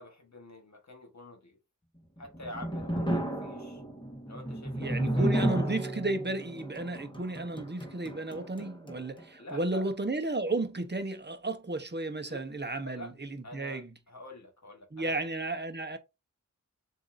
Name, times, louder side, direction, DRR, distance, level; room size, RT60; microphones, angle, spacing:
voice 1, 0.0-1.6 2.2-3.8 4.2-5.4 9.4-9.9 12.2-12.4 12.8-13.1 13.4-15.2, left 1 dB, 55° left, 1.4 m, -46 dB
sound 1, 2.0-9.3, right 1 dB, 15° left, 1.4 m, -33 dB
voice 2, 4.8-13.9 14.9-16.0, right 2 dB, 30° right, 0.9 m, -33 dB
7.0 x 2.7 x 2.6 m
wide cardioid pair, 45°, 33 cm